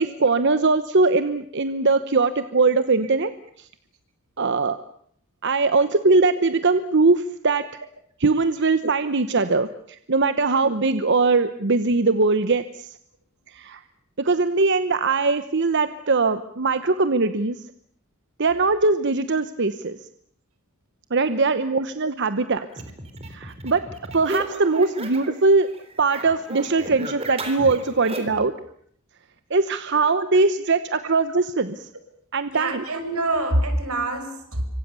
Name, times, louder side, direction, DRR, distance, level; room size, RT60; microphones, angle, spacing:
voice 1, 0.0-3.3 3.6-3.7 4.4-4.8 5.4-7.6 8.2-12.9 13.5-13.8 14.2-17.6 18.4-20.0 21.1-22.6 23.3-23.8 24.1-25.7 26.0-28.5 29.5-31.9 32.3-32.8, right 3 dB, 55° right, 1.0 m, -21 dB
sound 1, 22.7-25.4 25.7-28.5, right 1 dB, 25° right, 3.8 m, -34 dB
voice 2, 32.5-34.7, right 1 dB, 85° right, 5.4 m, -26 dB
26.5 x 24.5 x 6.9 m
head